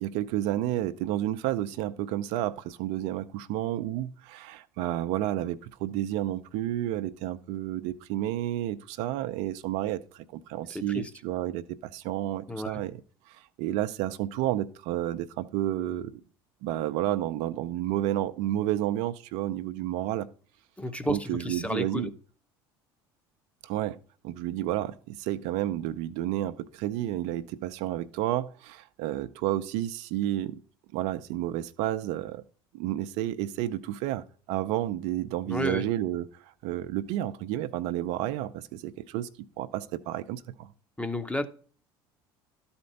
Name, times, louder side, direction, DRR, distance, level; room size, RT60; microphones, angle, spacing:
voice 1, 0.0-13.0 13.3-16.1 16.6-20.3 21.0-22.1 23.6-24.0 24.2-30.6 30.9-32.4 32.7-39.3 39.6-40.7, right 13 dB, 65° right, 0.6 m, -31 dB
voice 2, 10.7-11.1 12.5-12.8 20.8-22.1 35.5-35.8 41.0-41.5, left 1 dB, 10° left, 0.9 m, -32 dB
12.0 x 4.4 x 5.3 m
hypercardioid pair, 70°, 13 cm